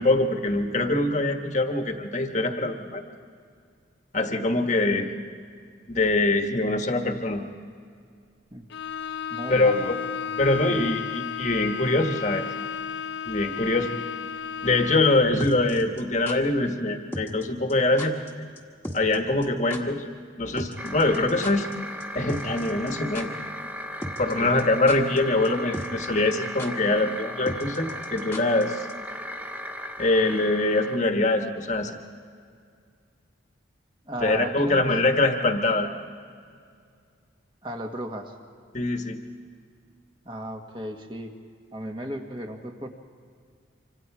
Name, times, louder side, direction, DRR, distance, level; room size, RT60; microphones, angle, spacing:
voice 1, 0.0-3.0 4.1-5.1 5.9-7.4 9.5-9.9 10.4-12.5 13.3-13.9 14.6-18.2 18.9-20.0 20.4-21.7 22.1-23.3 24.2-28.9 30.0-32.0 34.2-35.9 38.7-39.2, left 2 dB, 35° left, 5 dB, 1.4 m, -23 dB
Bowed string instrument, 8.7-15.2, left 7 dB, 60° left, 0.7 m, -33 dB
voice 2, 9.3-9.9 10.2-10.4 10.7-11.0 24.3-24.6 34.0-34.9 37.6-38.4 40.2-41.3 41.7-42.9, equal, 25° right, 3 dB, 1.6 m, -35 dB
sound 1, 15.4-16.4 17.1-17.4 17.7-17.8 18.0-18.3 18.6-18.7 18.8-19.2 19.4-19.5 19.7-19.8 20.6-21.7 22.0-22.1 22.3-22.9 23.1-23.3 24.0-24.3 24.6-25.2 25.4-25.5 25.7-26.1 26.3-26.4 26.6-26.7 27.5-28.6 28.9-29.0, left 1 dB, 10° left, 1.4 m, -36 dB
sound 2, 20.8-31.0, equal, 10° right, 0.7 m, -37 dB
26.0 x 25.5 x 4.8 m, 2.2 s
head